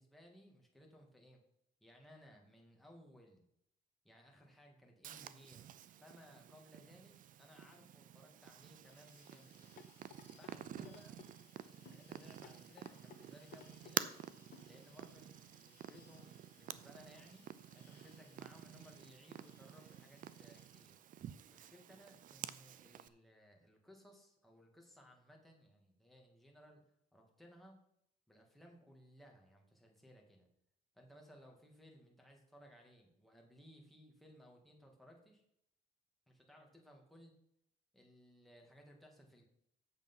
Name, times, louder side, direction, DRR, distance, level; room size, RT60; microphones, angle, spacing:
voice 1, 0.0-1.4 1.8-3.5 4.0-9.8 10.4-11.2 11.5-14.0 14.7-17.5 17.7-21.0 21.5-26.8 27.1-27.8 28.3-30.5 30.9-35.4 36.3-37.3 37.9-39.4, equal, ahead, 0 dB, 2.4 m, -61 dB
Purr, 5.0-23.1, right 10 dB, 50° right, 0.6 m, -49 dB
sound 1, 8.8-20.8, left 7 dB, 90° left, 1.9 m, -70 dB
sound 2, 9.8-10.5 10.9-11.3 11.9-12.0 12.4-13.2 13.5-14.0 14.5-14.7 15.1-15.2, left 9 dB, 55° left, 1.1 m, -57 dB
8.3 x 7.1 x 5.7 m, 0.75 s
cardioid pair, 110°, 17 cm